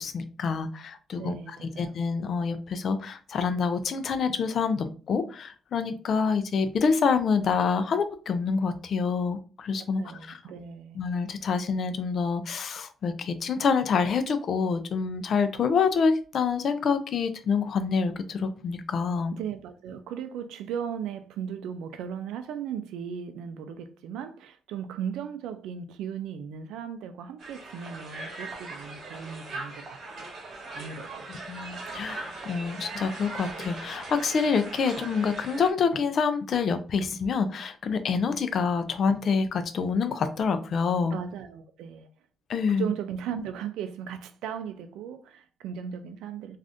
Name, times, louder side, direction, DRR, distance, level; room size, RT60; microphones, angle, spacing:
voice 1, 0.0-1.3 1.8-10.4 11.0-19.4 31.3-41.2 42.5-42.9, left 5 dB, 60° left, 0.4 m, -27 dB
voice 2, 1.2-2.0 10.0-11.0 19.3-30.3 30.7-31.3 41.1-42.1 42.7-46.6, right 8 dB, 90° right, 0.3 m, -37 dB
Crowd, 27.4-35.7, right 3 dB, 60° right, 1.0 m, -40 dB
2.5 x 2.4 x 3.5 m
cardioid pair, 90°, 0 cm